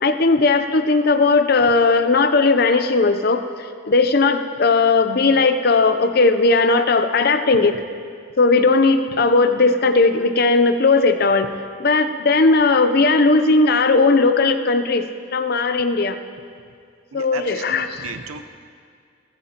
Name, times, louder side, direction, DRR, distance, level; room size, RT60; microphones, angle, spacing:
voice 1, 0.0-3.4 3.9-7.8 8.4-11.5 11.8-15.0 15.3-16.2 17.1-18.1, left 3 dB, 45° left, 9 dB, 0.6 m, -17 dB
voice 2, 17.1-18.4, right 5 dB, 85° right, 8 dB, 0.8 m, -34 dB
18.5 x 15.5 x 2.9 m, 2.2 s
head